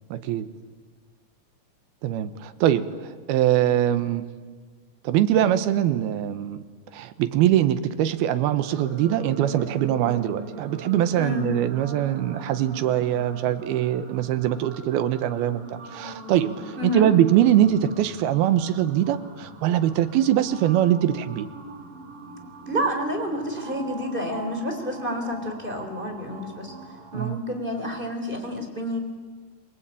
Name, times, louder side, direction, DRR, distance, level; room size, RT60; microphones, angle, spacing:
voice 1, 0.1-0.5 2.0-2.9 3.3-4.2 5.0-6.6 6.9-21.5 27.1-27.4, right 11 dB, 90° right, 11 dB, 3.0 m, -22 dB
sound 1, 8.6-27.3, right 2 dB, 55° right, 5.3 m, -42 dB
voice 2, 16.8-17.1 22.7-26.7 27.1-29.0, equal, 15° right, 4 dB, 3.5 m, -29 dB
28.5 x 23.5 x 8.8 m, 1.5 s
omnidirectional pair, 4.3 m